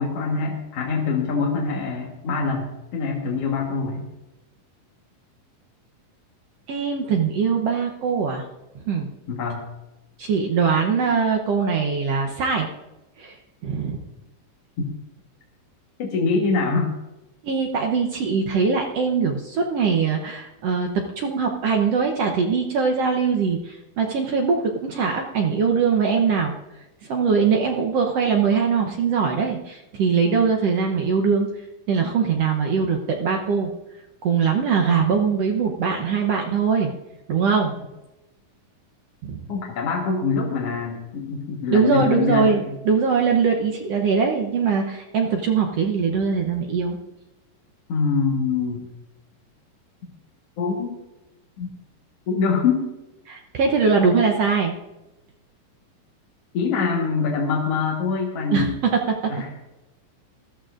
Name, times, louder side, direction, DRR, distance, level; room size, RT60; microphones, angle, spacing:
voice 1, 0.0-4.1 9.3-9.6 14.8-14.9 16.0-16.9 39.5-42.8 47.9-48.8 50.6-50.9 51.6-51.7 52.3-52.9 56.5-58.7 59.3-59.5, left 4 dB, 55° left, -1 dB, 2.1 m, -24 dB
voice 2, 6.7-8.4 8.9-9.1 10.2-12.7 13.2-13.4 13.6-14.0 17.4-20.9 21.2-26.5 27.1-31.5 31.9-33.7 34.2-36.9 37.3-37.7 39.2-39.4 41.7-47.0 53.3-54.7 58.5-58.9, right 5 dB, 75° right, 2 dB, 1.4 m, -22 dB
20.5 x 14.0 x 2.5 m, 1.0 s
omnidirectional pair, 4.1 m